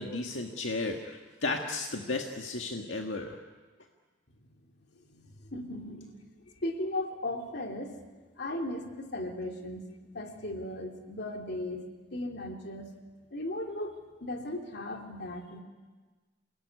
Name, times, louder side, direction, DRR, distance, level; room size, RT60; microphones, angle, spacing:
voice 1, 0.0-3.4, left 3 dB, 80° left, 2 dB, 1.8 m, -34 dB
voice 2, 5.0-6.3 6.6-7.9 8.4-9.9 10.1-12.9 13.3-15.6, left 1 dB, 55° left, 3 dB, 3.1 m, -37 dB
29.0 x 19.5 x 9.7 m, 1.3 s
head